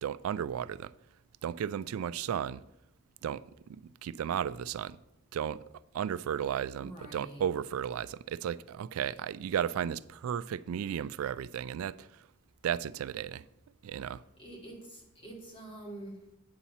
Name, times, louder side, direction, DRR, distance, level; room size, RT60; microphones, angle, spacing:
voice 1, 0.0-0.9 1.4-2.6 3.2-3.4 3.7-5.0 5.3-5.6 5.9-12.3 12.6-13.5 13.8-14.2, right 9 dB, 90° right, 0.3 m, -34 dB
voice 2, 6.7-7.4 14.4-16.2, right 1 dB, 25° left, 2.3 m, -46 dB
8.7 x 4.2 x 7.1 m
head